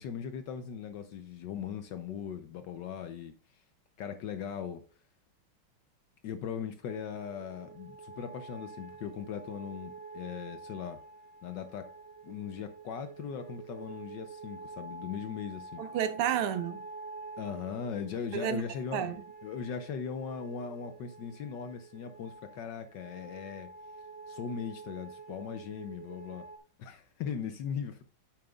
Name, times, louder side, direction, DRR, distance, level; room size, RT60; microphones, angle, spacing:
voice 1, 0.0-3.3 4.0-4.8 6.2-11.0 11.4-11.9 12.2-15.8 17.4-19.1 19.4-23.7 24.3-26.4 26.8-28.0, left 7 dB, 70° left, 1.1 m, -39 dB
sound 1, 6.8-26.6, right 4 dB, 45° right, 0.8 m, -48 dB
voice 2, 15.8-16.8 18.3-18.6 18.9-19.2, right 9 dB, 85° right, 1.7 m, -31 dB
8.6 x 7.8 x 2.3 m
omnidirectional pair, 2.4 m